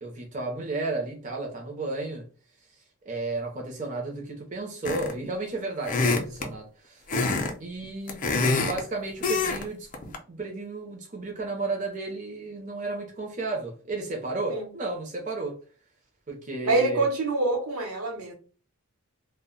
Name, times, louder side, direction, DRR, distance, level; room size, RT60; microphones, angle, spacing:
voice 1, 0.0-2.3 3.0-7.0 7.6-8.3 8.6-15.6 16.3-17.1, right 3 dB, 35° right, 0.6 m, -33 dB
sound 1, 4.8-5.3 5.8-6.5 7.1-7.5 7.8-8.8 9.2-9.6 9.9-10.2, left 3 dB, 35° left, 0.4 m, -25 dB
voice 2, 16.7-18.3, right 2 dB, 80° right, 0.8 m, -25 dB
2.1 x 2.0 x 3.6 m
head